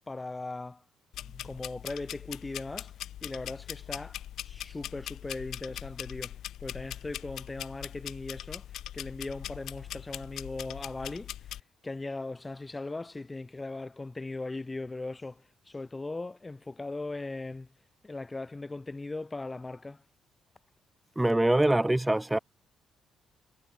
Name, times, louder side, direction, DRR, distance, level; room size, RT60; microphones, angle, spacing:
voice 1, 0.1-0.8 1.4-2.9 3.2-4.2 4.4-8.7 8.9-11.3 11.8-17.7 18.0-20.0, left 2 dB, 20° left, 1.6 m, -39 dB
sound 1, 1.1-11.6, left 12 dB, 75° left, 5.4 m, -41 dB
voice 2, 21.2-22.4, right 1 dB, 10° right, 0.4 m, -24 dB
cardioid pair, 90°, 0 cm